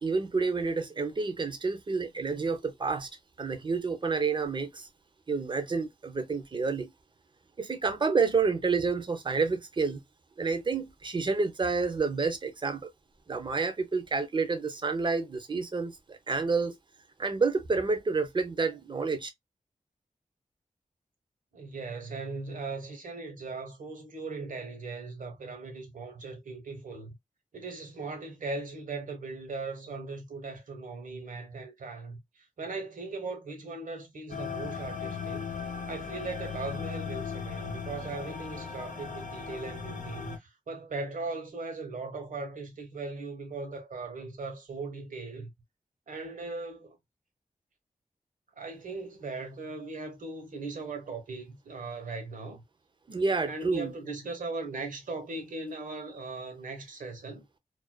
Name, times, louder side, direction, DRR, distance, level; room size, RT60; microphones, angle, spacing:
voice 1, 0.0-3.1 3.4-4.9 5.3-6.9 7.6-10.0 10.4-12.9 13.3-16.8 17.2-19.3 53.1-53.9, right 4 dB, 35° right, 0.5 m, -29 dB
voice 2, 21.5-27.1 27.5-35.5 35.9-45.5 46.1-47.0 48.6-52.6 53.4-57.4, right 3 dB, 80° right, 0.9 m, -39 dB
sound 1, 34.3-40.4, left 6 dB, 75° left, 0.6 m, -37 dB
2.4 x 2.2 x 2.2 m
wide cardioid pair, 125°, 13 cm